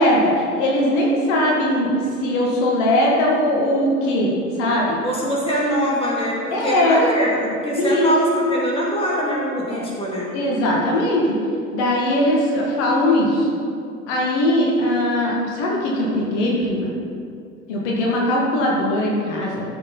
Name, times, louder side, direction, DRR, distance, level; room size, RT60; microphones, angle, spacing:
voice 1, 0.0-4.3 4.6-5.0 6.5-7.0 7.8-8.1 9.7-9.8 10.3-11.3 11.7-13.5 14.1-16.9 17.7-19.6, left 1 dB, 50° left, -3 dB, 2.1 m, -20 dB
voice 2, 5.0-10.3, equal, 10° left, -4 dB, 2.5 m, -23 dB
15.0 x 6.9 x 4.0 m, 2.4 s
figure-of-eight pair, 85°, 45 cm